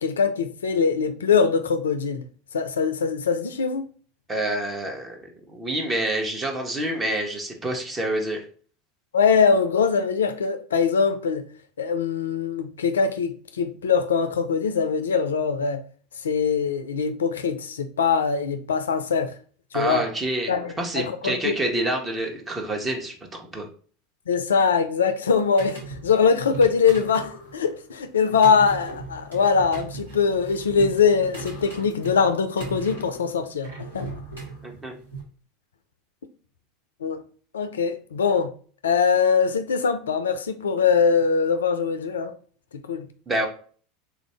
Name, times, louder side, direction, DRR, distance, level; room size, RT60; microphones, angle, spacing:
voice 1, 0.0-2.2 2.5-3.9 9.1-11.5 11.8-15.8 16.2-19.3 19.7-20.1 20.5-21.7 24.3-33.7 33.9-34.1 37.0-37.2 37.5-38.5 38.8-42.3 42.7-43.1, left 5 dB, 75° left, 0.3 m, -22 dB
voice 2, 4.3-8.4 19.7-23.7 34.6-34.9 43.3-43.5, right 1 dB, 20° right, 1.0 m, -27 dB
sound 1, 25.3-35.2, right 3 dB, 90° right, 1.8 m, -38 dB
3.4 x 2.6 x 3.3 m
figure-of-eight pair, 80°, 0 cm